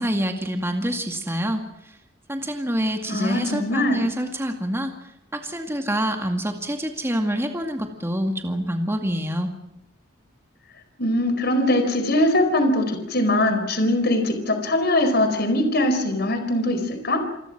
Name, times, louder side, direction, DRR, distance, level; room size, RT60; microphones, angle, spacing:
voice 1, 0.0-1.6 2.3-4.9 5.3-9.5, equal, 15° right, 5 dB, 2.2 m, -26 dB
voice 2, 3.1-4.1 11.0-17.2, left 1 dB, 55° left, 7 dB, 4.5 m, -21 dB
28.5 x 20.0 x 6.1 m, 0.86 s
head